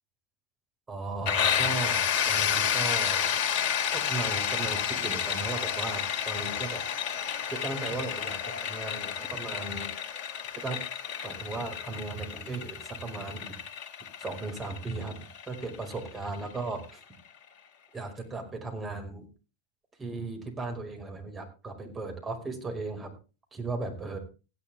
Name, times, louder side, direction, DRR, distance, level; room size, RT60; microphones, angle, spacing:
voice 1, 0.9-3.3 3.9-6.8 7.5-9.9 10.6-10.8 11.2-13.7 14.2-15.2 15.5-16.8 17.9-19.3 20.0-23.1 23.5-24.2, right 3 dB, 20° right, 3 dB, 5.2 m, -36 dB
sound 1, 1.3-16.8, left 8 dB, 55° left, 2.4 m, -30 dB
16.0 x 10.5 x 3.5 m, 0.32 s
figure-of-eight pair, 90°, 0 cm